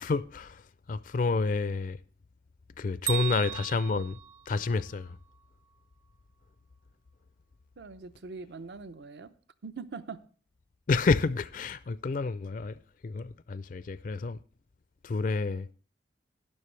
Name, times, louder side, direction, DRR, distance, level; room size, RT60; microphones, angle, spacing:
voice 1, 0.0-2.0 2.8-4.2 4.5-5.2 10.9-14.4 15.0-15.7, left 4 dB, 45° left, 0.4 m, -29 dB
Bell, 3.1-5.1, right 12 dB, 20° right, 0.5 m, -36 dB
voice 2, 7.8-9.3 9.6-10.2, right 4 dB, 65° right, 0.7 m, -42 dB
12.5 x 10.5 x 3.2 m
head